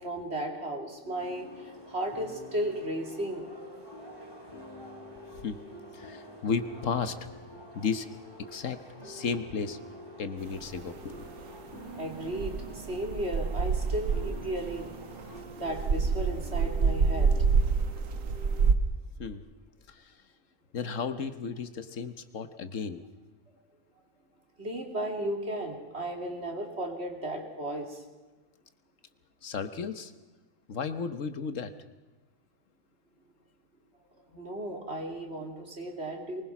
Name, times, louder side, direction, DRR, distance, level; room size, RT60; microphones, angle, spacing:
voice 1, 0.0-3.5 11.9-14.9 15.6-17.3 24.6-28.0 34.3-36.4, right 1 dB, 50° right, 3 dB, 3.1 m, -35 dB
sound 1, 1.0-18.7, left 1 dB, 20° left, 3.8 m, -48 dB
sound 2, 1.2-15.4, equal, 15° right, 4.2 m, -52 dB
voice 2, 5.9-7.3 7.7-8.1 8.5-9.8 10.2-11.3 19.2-19.4 19.9-20.1 20.7-23.0 29.4-30.1 30.7-31.7, left 5 dB, 70° left, 11 dB, 1.5 m, -34 dB
sound 3, 10.5-11.4 11.7-18.7, right 5 dB, 75° right, 1.6 m, -27 dB
24.0 x 20.0 x 6.0 m, 1.2 s
omnidirectional pair, 1.4 m